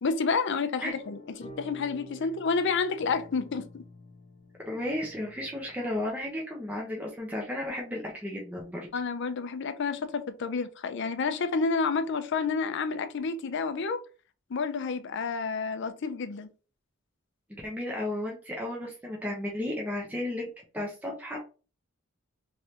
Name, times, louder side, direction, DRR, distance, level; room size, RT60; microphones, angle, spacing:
voice 1, 0.0-3.7 8.9-14.0 14.5-16.5, left 4 dB, 60° left, 0.5 m, -29 dB
sound 1, 0.9-6.4, equal, 40° left, 1.1 m, -49 dB
voice 2, 4.7-8.9 17.5-20.5 20.7-21.4, left 1 dB, 10° right, 0.8 m, -34 dB
3.6 x 3.2 x 2.8 m
head